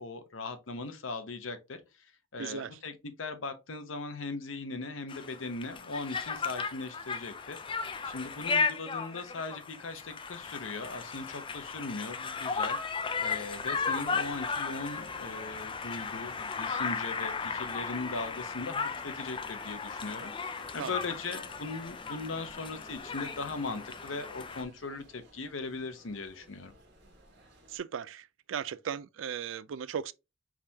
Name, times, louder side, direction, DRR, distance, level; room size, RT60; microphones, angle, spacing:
voice 1, 0.0-7.6 8.0-12.8 13.2-26.7, left 3 dB, 90° left, 0.9 m, -39 dB
voice 2, 2.4-2.8 20.8-21.0 27.7-30.1, right 8 dB, 80° right, 0.4 m, -37 dB
Conversation, 5.1-24.6, left 5 dB, 25° left, 0.4 m, -35 dB
sound 1, 13.0-27.8, equal, 60° right, 1.7 m, -58 dB
sound 2, 18.8-24.5, equal, ahead, 0.7 m, -55 dB
4.8 x 3.5 x 2.8 m
head